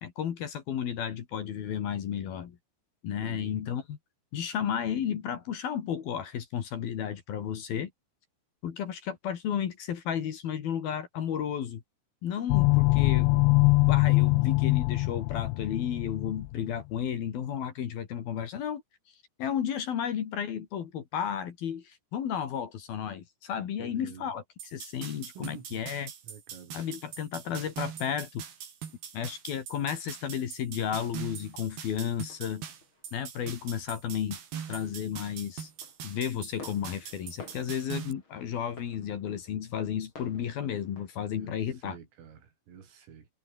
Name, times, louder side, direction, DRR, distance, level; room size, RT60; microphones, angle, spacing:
voice 1, 0.0-2.6 3.0-4.0 4.3-7.9 8.6-11.8 12.2-13.3 13.7-18.8 19.4-26.1 26.7-28.4 29.1-32.6 33.1-34.4 34.7-35.7 36.0-42.0, left 9 dB, 55° left, 3.5 m, -33 dB
voice 2, 3.2-3.6 23.8-24.3 25.4-25.8 26.2-26.8 41.3-43.3, right 7 dB, 80° right, 7.2 m, -48 dB
sound 1, 12.5-16.5, left 24 dB, 85° left, 2.6 m, -23 dB
sound 2, 24.6-38.1, right 8 dB, 55° right, 5.1 m, -42 dB
sound 3, 32.3-33.6 34.0-34.5 34.8-41.9, left 3 dB, 25° left, 6.7 m, -53 dB
omnidirectional pair, 5.8 m